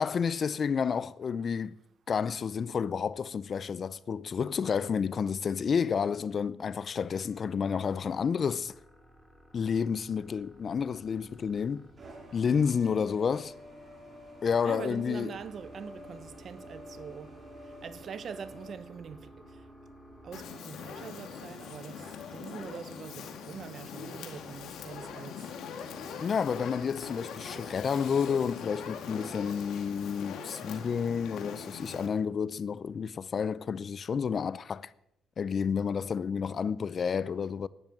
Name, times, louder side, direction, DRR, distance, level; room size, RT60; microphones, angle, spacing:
voice 1, 0.0-1.7 2.1-8.7 9.5-11.9 12.3-13.5 14.4-15.3 26.2-34.9 35.4-37.7, left 6 dB, 50° left, 0.5 m, -30 dB
sound 1, 6.8-23.3, equal, ahead, 3.7 m, -55 dB
sound 2, 10.5-18.7, equal, 35° right, 4.6 m, -51 dB
voice 2, 12.6-13.1 14.6-19.7 20.2-25.6, right 7 dB, 55° right, 1.0 m, -44 dB
Fire, 20.3-32.1, left 6 dB, 80° left, 2.1 m, -42 dB
12.5 x 10.5 x 7.6 m
cardioid pair, 90°, 0 cm